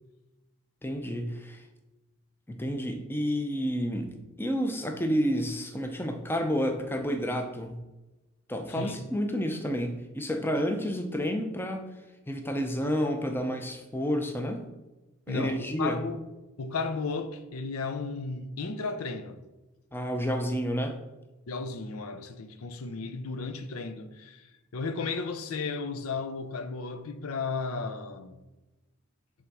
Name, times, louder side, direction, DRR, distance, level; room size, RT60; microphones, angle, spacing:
voice 1, 0.8-1.6 2.5-7.8 8.5-11.8 12.3-14.7 15.3-16.0 19.9-21.0, equal, 10° left, 0.5 m, -30 dB
voice 2, 15.3-16.2 16.6-19.4 21.5-28.4, left 4 dB, 85° left, 0.6 m, -34 dB
7.9 x 3.5 x 4.7 m
head